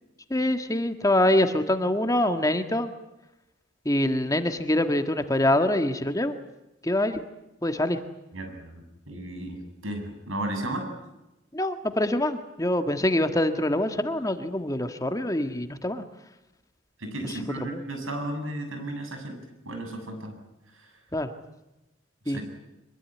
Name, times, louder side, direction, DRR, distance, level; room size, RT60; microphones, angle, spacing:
voice 1, 0.3-2.9 3.8-6.3 6.8-7.2 7.6-8.0 11.5-16.0 17.2-17.8 21.1-21.3 22.3-22.4, left 1 dB, 15° left, 8 dB, 1.6 m, -25 dB
voice 2, 8.3-10.9 17.0-19.4 19.7-20.4 20.8-20.9 22.3-22.4, right 1 dB, 90° right, 5 dB, 7.7 m, -34 dB
24.5 x 22.5 x 9.6 m, 0.97 s
head